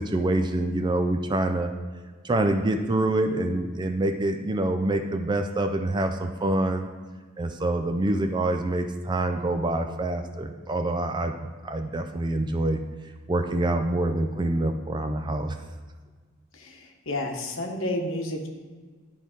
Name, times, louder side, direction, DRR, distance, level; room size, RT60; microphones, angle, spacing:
voice 1, 0.0-1.7 2.2-6.9 7.4-11.3 11.6-12.8 13.3-15.6, right 2 dB, 20° right, 6 dB, 0.4 m, -26 dB
voice 2, 16.5-18.5, left 1 dB, 80° left, 3 dB, 1.1 m, -31 dB
11.0 x 3.9 x 5.0 m, 1.4 s
head